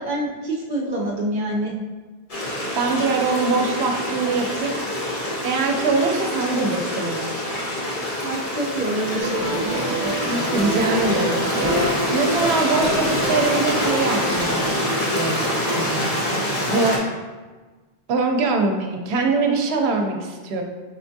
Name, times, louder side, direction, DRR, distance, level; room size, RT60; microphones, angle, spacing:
voice 1, 0.0-1.7 8.2-9.9, right 1 dB, 45° right, -2 dB, 0.7 m, -26 dB
Stream, 2.3-17.0, left 1 dB, 35° left, 0.9 m, -25 dB
voice 2, 2.4-4.8 5.4-7.3 10.0-17.0 18.1-20.6, right 3 dB, 80° right, 3 dB, 0.9 m, -23 dB
sound 1, 9.2-14.7, right 1 dB, 5° right, 1.3 m, -27 dB
5.0 x 3.4 x 2.6 m, 1.3 s
omnidirectional pair, 1.1 m